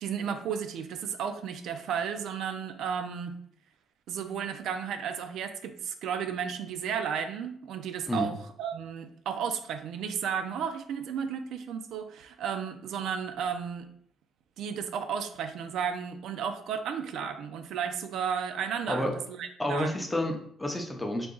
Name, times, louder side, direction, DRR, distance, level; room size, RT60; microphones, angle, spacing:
voice 1, 0.0-3.4 4.1-13.9 14.6-20.1, right 7 dB, 70° right, 7 dB, 0.4 m, -33 dB
voice 2, 19.6-21.3, left 1 dB, 10° left, 3 dB, 0.6 m, -30 dB
3.8 x 2.8 x 3.8 m, 0.64 s
cardioid pair, 160°, 0 cm